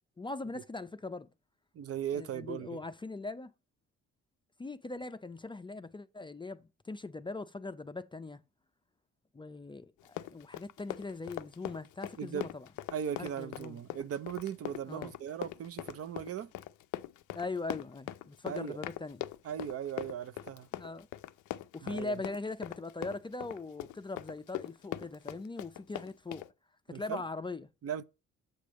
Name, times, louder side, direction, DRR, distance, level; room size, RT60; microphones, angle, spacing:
voice 1, 0.2-1.3 2.1-3.5 4.6-8.4 9.3-12.7 13.2-13.8 14.9-15.1 17.3-19.2 20.8-21.1 21.7-26.4 26.9-27.7, left 3 dB, 15° left, 0.4 m, -40 dB
voice 2, 1.7-2.8 12.2-12.5 12.9-16.5 18.5-18.8 19.4-20.7 21.8-22.2 26.9-27.2 27.8-28.0, right 9 dB, 50° right, 0.6 m, -38 dB
Run, 10.0-26.5, left 14 dB, 80° left, 0.5 m, -41 dB
7.7 x 3.4 x 6.3 m
cardioid pair, 90°, 30 cm